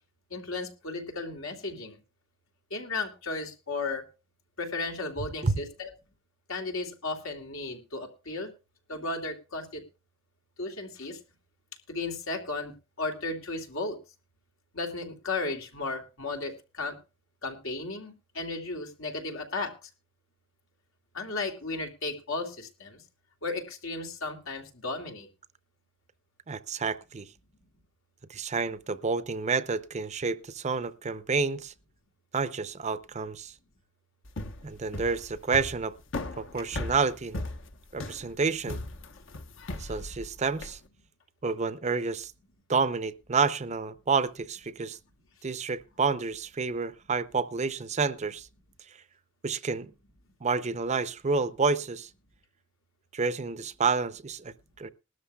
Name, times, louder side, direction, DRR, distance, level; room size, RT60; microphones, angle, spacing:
voice 1, 0.3-2.0 2.7-4.0 4.6-5.9 6.5-8.5 8.9-9.8 10.6-11.2 11.9-14.0 14.7-17.0 17.4-19.9 21.1-23.0 23.4-25.3, left 3 dB, 85° left, 2.8 m, -35 dB
voice 2, 26.5-27.3 28.3-31.7 32.3-33.5 34.6-35.9 36.4-37.4 37.9-38.8 39.7-40.8 41.4-42.3 42.7-45.0 45.4-48.5 49.4-49.9 50.4-52.1 53.1-54.9, right 4 dB, 35° right, 0.6 m, -29 dB
sound 1, 34.2-40.8, left 2 dB, 65° left, 1.1 m, -37 dB
20.5 x 12.5 x 2.3 m
head